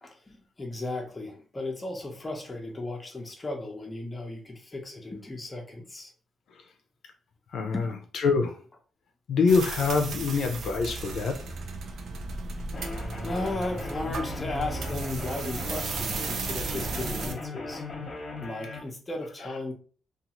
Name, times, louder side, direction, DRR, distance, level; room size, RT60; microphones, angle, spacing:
voice 1, 0.0-6.1 7.6-7.9 13.2-17.8 18.4-19.7, left 2 dB, 20° left, 1 dB, 0.7 m, -35 dB
voice 2, 7.5-7.8 8.2-8.6 9.3-11.4, left 4 dB, 70° left, 4 dB, 0.5 m, -24 dB
sound 1, 9.5-17.3, right 3 dB, 70° right, 0.5 m, -35 dB
sound 2, 12.7-18.8, left 3 dB, 40° left, 0.9 m, -38 dB
2.5 x 2.4 x 2.9 m, 0.40 s
cardioid pair, 120°, 0 cm